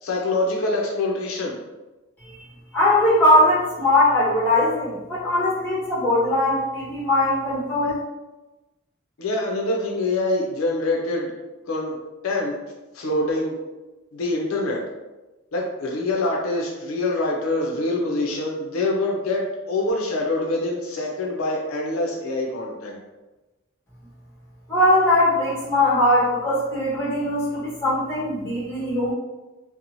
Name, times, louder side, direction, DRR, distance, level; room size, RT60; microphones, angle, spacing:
voice 1, 0.0-1.6 9.2-11.3 11.7-12.0 12.2-12.5 12.9-13.6 14.1-14.8 15.5-23.0, left 2 dB, 80° left, -1 dB, 0.5 m, -25 dB
voice 2, 2.7-8.0 24.7-29.1, left 1 dB, 10° left, -8 dB, 1.1 m, -20 dB
2.9 x 2.0 x 2.5 m, 1.1 s
head